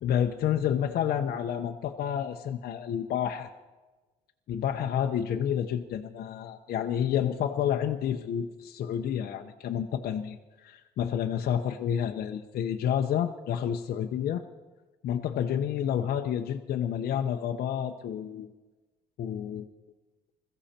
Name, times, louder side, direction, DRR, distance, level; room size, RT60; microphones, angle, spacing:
voice 1, 0.0-3.5 4.5-14.4 15.0-18.5 19.2-19.7, left 9 dB, 60° left, 3 dB, 0.9 m, -29 dB
22.0 x 14.5 x 4.4 m, 1.2 s
cardioid pair, 110°, 17 cm